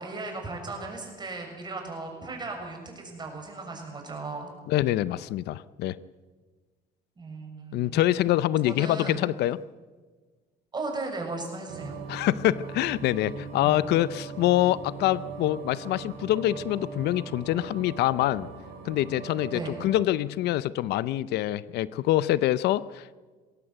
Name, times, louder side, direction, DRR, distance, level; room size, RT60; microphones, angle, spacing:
voice 1, 0.0-4.5 7.2-8.0 8.6-9.3 10.7-12.0 13.6-13.8 19.5-19.8, right 3 dB, 25° right, 2 dB, 6.7 m, -36 dB
voice 2, 4.7-6.0 7.7-9.6 12.1-18.5 18.8-23.1, left 14 dB, 80° left, 18 dB, 0.6 m, -25 dB
sound 1, 11.7-20.0, right 5 dB, 75° right, 4.8 m, -40 dB
21.0 x 17.5 x 8.0 m, 1.4 s
cardioid pair, 110°, 17 cm